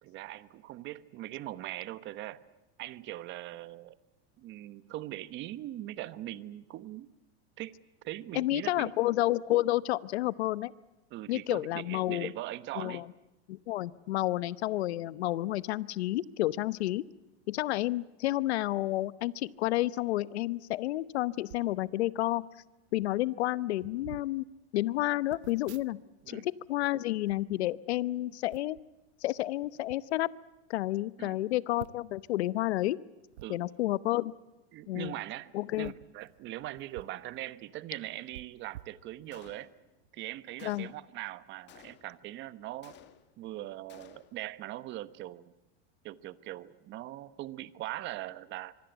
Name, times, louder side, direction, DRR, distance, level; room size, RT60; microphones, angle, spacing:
voice 1, 0.0-2.4 2.8-4.0 4.4-7.1 7.6-7.7 8.0-8.9 11.1-13.1 26.2-26.5 31.2-31.4 33.4-33.6 34.7-39.7 40.1-42.9 43.4-45.4 46.0-48.7, right 15 dB, 35° right, 15 dB, 1.2 m, -41 dB
voice 2, 8.3-10.7 11.3-12.3 12.8-13.0 13.5-17.0 17.5-22.4 22.9-24.4 24.7-26.0 26.3-28.8 29.2-30.3 30.7-33.0 33.5-34.3 34.9-35.1 35.5-35.9 40.6-40.9, left 16 dB, 80° left, 17 dB, 1.0 m, -30 dB
sound 1, 21.4-21.7 22.6-22.7 22.9-23.2 23.7-24.3 25.3-26.3 26.6-28.0 28.5-28.9 29.6-30.0 30.5-30.6 30.9-31.0 31.8-32.2 33.3-33.5 34.9-35.1 35.7-37.2 37.5-37.6 38.3-39.5 40.0-40.2, right 13 dB, 85° right, 1.1 m, -51 dB
Gunshot gunfire, 39.3-40.0 40.6-41.2 41.7-42.3 42.8-43.5 43.9-44.5, left 11 dB, 35° left, 1.9 m, -56 dB
25.5 x 23.5 x 8.2 m, 0.99 s
supercardioid pair, 140°, 32 cm